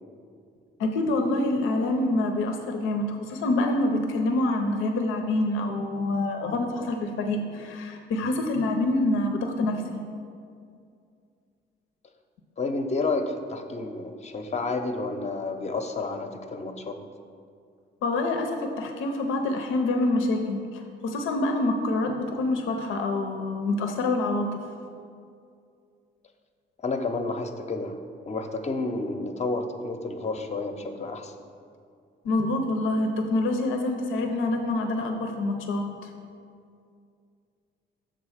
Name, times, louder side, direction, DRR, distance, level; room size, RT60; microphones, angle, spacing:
voice 1, 0.8-10.0 18.0-24.5 32.2-36.1, left 2 dB, 85° left, 4 dB, 0.6 m, -26 dB
voice 2, 12.6-17.0 26.8-28.0 28.3-31.3, left 3 dB, 35° left, 5 dB, 0.6 m, -30 dB
6.5 x 3.9 x 6.3 m, 2.3 s
cardioid pair, 90°, 20 cm